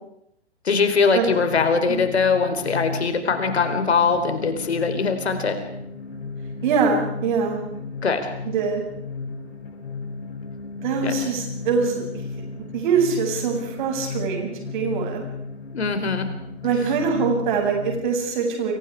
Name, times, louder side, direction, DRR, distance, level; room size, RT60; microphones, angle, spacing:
voice 1, 0.6-5.6 8.0-8.3 11.0-11.1 15.7-16.3, left 5 dB, 70° left, 8 dB, 4.4 m, -22 dB
sound 1, 1.2-18.0, left 4 dB, 50° left, 7.3 m, -34 dB
voice 2, 6.6-7.6 8.4-8.8 10.8-12.0 12.5-15.2 16.6-18.7, right 5 dB, 45° right, 2 dB, 7.9 m, -23 dB
30.0 x 23.5 x 5.0 m, 0.76 s
figure-of-eight pair, 125°, 34 cm